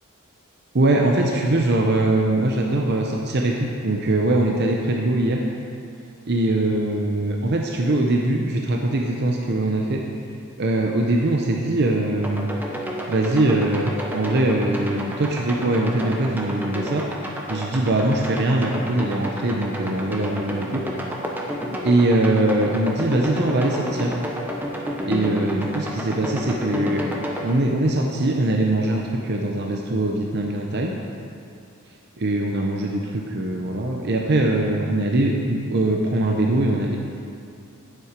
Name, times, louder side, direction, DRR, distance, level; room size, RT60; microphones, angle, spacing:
voice 1, 0.7-5.4 6.3-10.0 10.6-12.5 13.1-17.1 17.5-20.8 21.8-24.1 25.0-27.0 27.4-30.9 32.2-37.0, right 2 dB, 50° right, 0 dB, 0.7 m, -22 dB
sound 1, 12.2-27.5, equal, 10° right, 1.0 m, -31 dB
11.5 x 7.7 x 5.1 m, 2.5 s
head